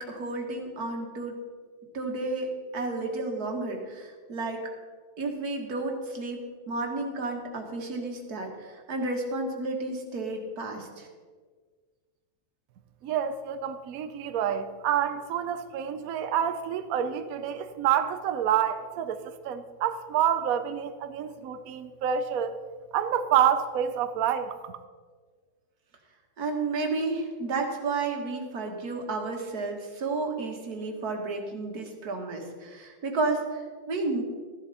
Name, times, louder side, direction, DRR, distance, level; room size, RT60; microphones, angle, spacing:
voice 1, 0.0-1.4 1.9-4.6 5.2-11.1 26.4-34.2, right 3 dB, 50° right, 2 dB, 2.0 m, -32 dB
voice 2, 13.0-22.5 22.9-24.8, right 9 dB, 75° right, 9 dB, 0.8 m, -28 dB
14.0 x 11.0 x 4.1 m, 1.5 s
omnidirectional pair, 2.2 m